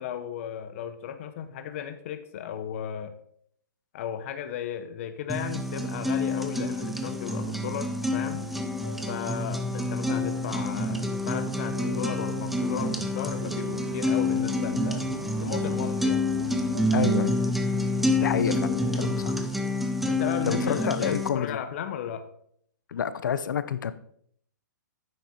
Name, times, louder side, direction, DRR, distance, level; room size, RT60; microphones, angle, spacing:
voice 1, 0.0-3.1 3.9-8.5 9.1-15.1 15.4-16.2 20.1-22.2, left 9 dB, 40° left, 9 dB, 0.8 m, -35 dB
sound 1, 5.3-21.3, left 1 dB, ahead, 0.4 m, -28 dB
sound 2, 8.1-19.8, right 4 dB, 65° right, 1.4 m, -43 dB
voice 2, 16.9-17.4 18.2-18.7 18.9-19.3 20.4-21.6 22.9-23.9, left 8 dB, 75° left, 14 dB, 0.7 m, -28 dB
9.3 x 7.4 x 4.3 m, 0.66 s
hypercardioid pair, 160°, 11 cm